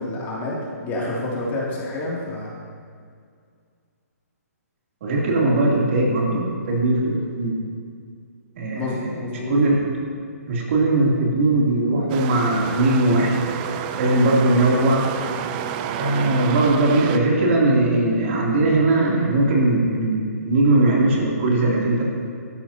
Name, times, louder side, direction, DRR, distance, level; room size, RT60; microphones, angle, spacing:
voice 1, 0.0-2.5 8.7-9.5, left 2 dB, 20° left, -5 dB, 2.9 m, -28 dB
voice 2, 5.0-7.5 8.5-9.2 9.5-10.0 10.5-13.4 14.0-15.0 15.9-22.0, right 2 dB, 50° right, -3 dB, 3.2 m, -19 dB
sound 1, 12.1-17.2, right 9 dB, 30° right, 0.6 m, -30 dB
16.0 x 13.0 x 3.0 m, 2.2 s
hypercardioid pair, 145°, 9 cm